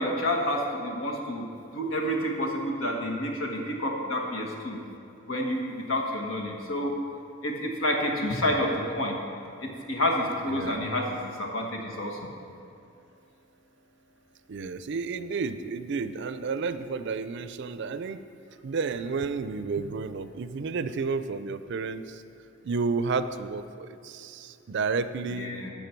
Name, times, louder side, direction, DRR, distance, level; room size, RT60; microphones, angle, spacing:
voice 1, 0.0-1.4 1.7-4.8 5.3-6.9 7.4-9.2 9.9-12.3 25.3-25.7, left 1 dB, 85° left, 1 dB, 1.5 m, -29 dB
voice 2, 10.5-10.9 14.5-18.2 18.6-22.2 22.6-25.5, right 4 dB, 60° right, 12 dB, 0.4 m, -31 dB
12.0 x 7.4 x 4.5 m, 2.7 s
head